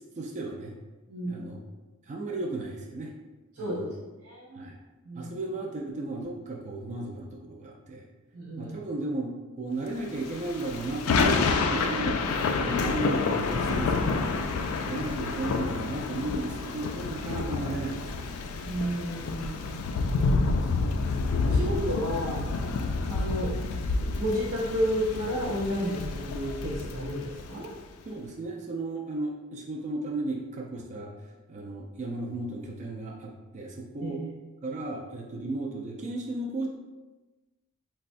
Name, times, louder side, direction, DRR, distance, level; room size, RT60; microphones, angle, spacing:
voice 1, 0.2-0.8 1.3-1.6 2.1-3.1 3.6-3.9 4.5-4.8 5.1-8.0 8.6-9.3 9.6-12.2 12.6-14.3 14.8-18.4 28.1-31.1 31.5-34.2 34.6-36.7, right 2 dB, 35° right, 0 dB, 0.3 m, -35 dB
voice 2, 1.1-1.4 3.5-3.9 4.2-4.7 5.0-5.3 8.3-8.7 18.6-19.9 20.3-21.0 21.4-22.5 23.1-23.5 24.0-27.7 34.0-34.1, equal, 90° right, -6 dB, 0.6 m, -32 dB
Thunder / Rain, 10.2-27.7, left 4 dB, 80° left, 0.3 m, -29 dB
4.0 x 2.2 x 2.5 m, 1.2 s
head